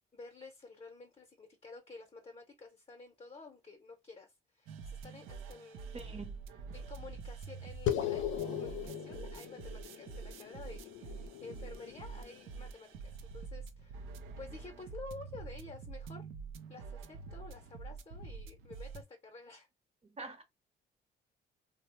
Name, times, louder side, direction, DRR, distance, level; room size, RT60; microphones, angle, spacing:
voice 1, 0.1-6.2 6.7-8.3 8.5-16.3 16.7-19.7, left 3 dB, 25° left, 0.7 m, -51 dB
sound 1, 4.7-19.0, right 5 dB, 90° right, 0.5 m, -46 dB
voice 2, 5.9-6.4 20.0-20.4, right 3 dB, 30° right, 0.8 m, -45 dB
sound 2, 7.9-12.6, left 10 dB, 80° left, 0.5 m, -39 dB
2.9 x 2.0 x 2.9 m
cardioid pair, 90°, 20 cm